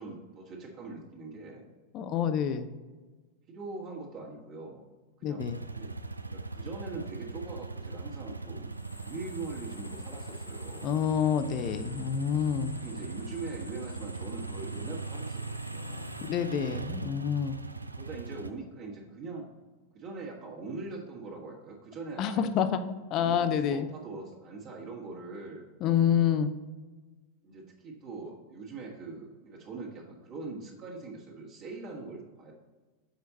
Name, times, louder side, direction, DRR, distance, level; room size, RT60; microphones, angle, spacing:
voice 1, 0.0-1.6 2.3-2.5 3.5-4.8 5.2-5.4 5.8-5.9 6.3-10.9 12.7-16.1 18.0-19.5 19.9-22.5 23.2-25.6 27.4-32.5, right 3 dB, 35° right, -3 dB, 1.7 m, -42 dB
voice 2, 1.9-2.7 5.2-5.6 10.8-12.7 16.3-17.6 22.2-22.8 23.1-23.9 25.8-26.5, left 8 dB, 35° left, 10 dB, 0.5 m, -27 dB
sound 1, 5.4-18.5, right 3 dB, 80° right, 0.3 m, -40 dB
sound 2, 8.7-16.3, left 2 dB, 85° left, 0.9 m, -50 dB
6.6 x 4.6 x 4.1 m, 1.3 s
figure-of-eight pair, 90°, 0 cm